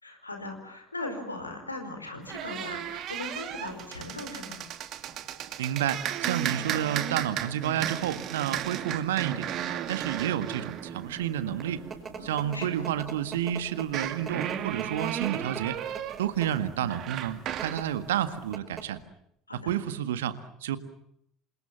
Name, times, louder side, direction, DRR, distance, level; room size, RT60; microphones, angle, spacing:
voice 1, 0.0-4.6 12.2-12.9 19.5-19.7, left 2 dB, 85° left, 5 dB, 4.8 m, -39 dB
sound 1, 2.3-12.7 13.8-17.8, right 10 dB, 50° right, 2.5 m, -35 dB
voice 2, 5.6-9.5 9.9-11.8 12.2-15.8 16.2-19.0 19.5-20.8, right 10 dB, 70° right, 11 dB, 1.7 m, -30 dB
sound 2, 11.3-16.7 17.4-17.8 18.2-18.3 18.5-19.0, right 5 dB, 30° right, 5.2 m, -40 dB
28.5 x 27.0 x 7.2 m, 0.75 s
figure-of-eight pair, 60°, 0 cm